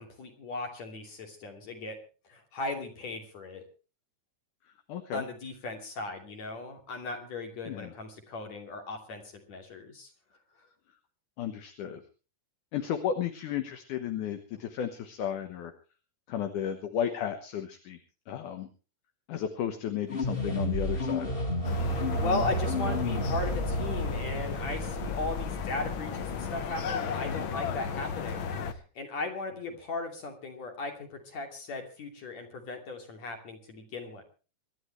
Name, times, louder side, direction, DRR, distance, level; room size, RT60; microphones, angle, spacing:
voice 1, 0.0-2.0 2.3-3.6 5.1-9.2 9.5-10.1 22.2-34.2, left 2 dB, 50° left, 5 dB, 3.8 m, -37 dB
voice 2, 4.9-5.3 7.7-7.9 11.4-12.0 12.7-15.7 16.3-18.0 18.3-18.7 19.3-21.3, left 9 dB, 70° left, 8 dB, 2.6 m, -33 dB
sound 1, 20.1-26.7, equal, 25° left, 1.3 m, -32 dB
sound 2, 21.6-28.7, left 6 dB, 85° left, 1.1 m, -35 dB
26.0 x 12.0 x 3.2 m, 0.35 s
omnidirectional pair, 4.0 m